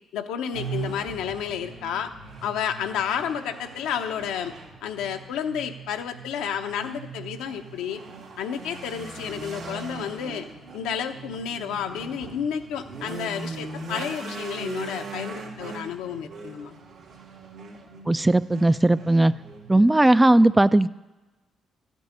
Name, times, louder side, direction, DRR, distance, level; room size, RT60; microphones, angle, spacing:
voice 1, 0.1-2.1 2.4-4.5 4.8-8.0 8.4-10.5 10.7-16.8, left 8 dB, 80° left, 5 dB, 0.8 m, -31 dB
sound 1, 0.5-19.8, right 4 dB, 70° right, 2.3 m, -40 dB
voice 2, 18.1-19.3 19.7-20.9, right 1 dB, 15° right, 14 dB, 0.4 m, -18 dB
13.0 x 5.4 x 9.0 m, 1.1 s
hypercardioid pair, 50°, 0 cm